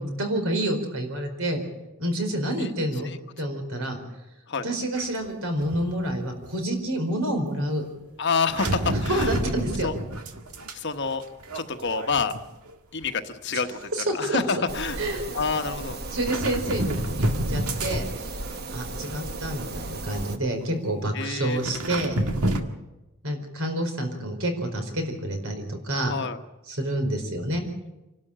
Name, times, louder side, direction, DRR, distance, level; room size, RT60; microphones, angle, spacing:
voice 1, 0.0-1.6 2.0-3.1 3.4-4.0 4.6-7.8 9.1-9.9 13.5-13.6 13.9-14.4 15.0-15.2 16.1-18.3 18.7-22.2 23.2-26.1 26.7-27.6, right 1 dB, 70° right, 5 dB, 4.7 m, -28 dB
sound 1, 5.0-5.2 5.6-6.5 8.5-10.7 11.0-12.7 13.0-13.3 14.4-14.5 16.1-18.5 18.9-19.6 20.1-20.2 21.5-22.6, right 1 dB, 85° right, 1.8 m, -30 dB
voice 2, 8.2-9.3 9.8-9.9 10.7-11.2 11.5-12.3 12.9-15.0 15.3-16.0 21.1-21.6 26.1-26.4, left 5 dB, 50° left, 8 dB, 1.2 m, -28 dB
sound 2, 14.7-20.4, right 2 dB, 45° right, 1.2 m, -35 dB
27.0 x 12.5 x 8.9 m, 1.0 s
head